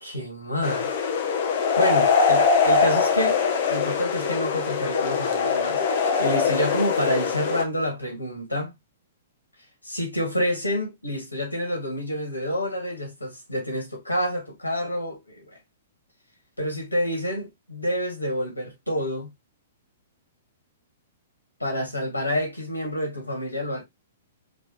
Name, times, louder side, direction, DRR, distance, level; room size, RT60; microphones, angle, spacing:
voice 1, 0.0-0.9 1.8-3.4 3.7-8.7 9.8-15.5 16.6-19.3 21.6-23.8, equal, 85° left, 2.5 m, -28 dB
sound 1, 0.6-7.6, left 5 dB, 50° left, 1.0 m, -22 dB
5.1 x 3.3 x 3.1 m
figure-of-eight pair, 110°, 0 cm